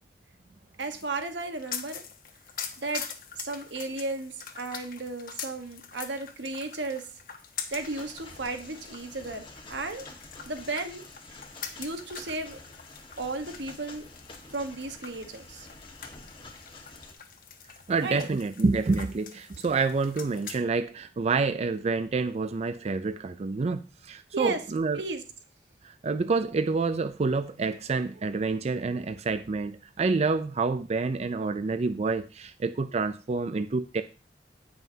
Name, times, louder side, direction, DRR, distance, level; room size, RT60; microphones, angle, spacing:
sound 1, 0.8-20.6, left 7 dB, 55° left, 1.1 m, -44 dB
voice 1, 0.8-2.0 2.8-3.1 3.3-7.1 7.7-10.1 10.5-11.0 11.8-12.6 13.2-14.1 14.5-15.7 18.0-18.3 24.3-24.6 24.9-25.2, right 3 dB, 85° right, 7 dB, 1.2 m, -34 dB
sound 2, 7.7-17.1, left 2 dB, 30° left, 1.5 m, -48 dB
voice 2, 17.9-25.0 25.8-34.0, right 4 dB, 40° right, 10 dB, 0.4 m, -28 dB
16.5 x 5.7 x 2.8 m, 0.33 s
head